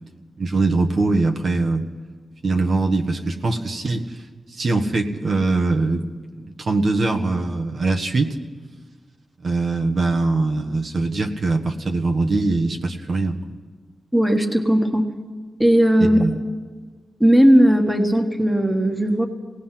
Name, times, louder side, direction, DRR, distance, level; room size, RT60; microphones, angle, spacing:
voice 1, 0.4-1.9 2.4-4.1 4.5-6.0 6.4-8.3 9.4-13.4 16.0-16.4, right 3 dB, 50° right, 2 dB, 1.4 m, -22 dB
voice 2, 14.1-15.1 15.6-16.2 17.2-19.3, equal, 5° right, 5 dB, 1.5 m, -16 dB
27.0 x 19.0 x 5.8 m, 1.5 s
wide cardioid pair, 100°, 0 cm